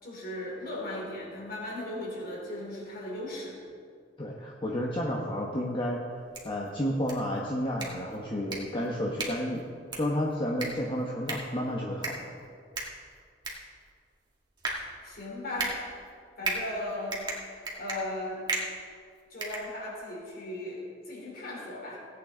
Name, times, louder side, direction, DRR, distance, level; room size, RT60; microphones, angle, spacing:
voice 1, 0.0-3.6 15.0-16.0 16.4-18.4 19.3-22.0, left 1 dB, 55° left, -3 dB, 3.7 m, -37 dB
voice 2, 4.2-6.0 6.4-9.6 9.9-12.3, equal, 25° left, -2 dB, 1.1 m, -31 dB
sound 1, 6.1-20.2, right 3 dB, 25° right, 2.0 m, -38 dB
17.5 x 8.9 x 3.9 m, 2.2 s
head